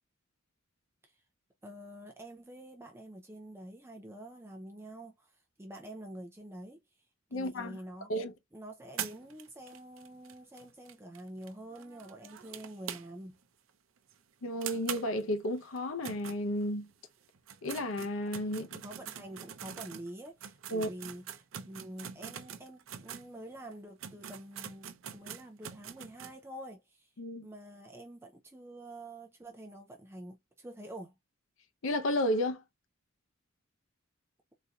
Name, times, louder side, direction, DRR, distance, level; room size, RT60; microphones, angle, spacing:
voice 1, 1.6-6.8 7.3-8.1 8.5-13.4 18.8-24.9 25.1-27.1 27.4-31.1, right 1 dB, 10° right, 0.5 m, -47 dB
voice 2, 7.3-7.8 8.1-8.3 14.4-16.9 17.6-18.8 20.7-20.9 27.2-27.5 31.8-32.6, left 1 dB, 75° left, 0.6 m, -32 dB
sound 1, 9.0-13.4 13.7-13.8 14.1-14.2 14.6-16.9 17.3-23.3 23.7-23.8 24.0-26.4, right 9 dB, 70° right, 0.5 m, -44 dB
4.1 x 2.6 x 2.3 m
head